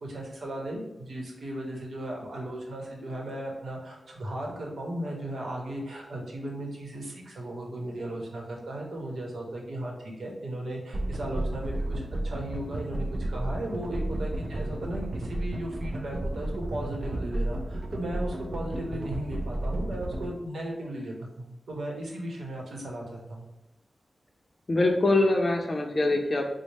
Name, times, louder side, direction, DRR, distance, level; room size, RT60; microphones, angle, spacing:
voice 1, 0.0-23.5, right 1 dB, 80° right, -1 dB, 0.8 m, -36 dB
sound 1, 10.9-20.3, right 1 dB, 45° right, 0.3 m, -32 dB
voice 2, 24.7-26.5, left 2 dB, 35° left, 2 dB, 0.5 m, -24 dB
4.1 x 2.0 x 3.2 m, 0.93 s
wide cardioid pair, 135°, 0 cm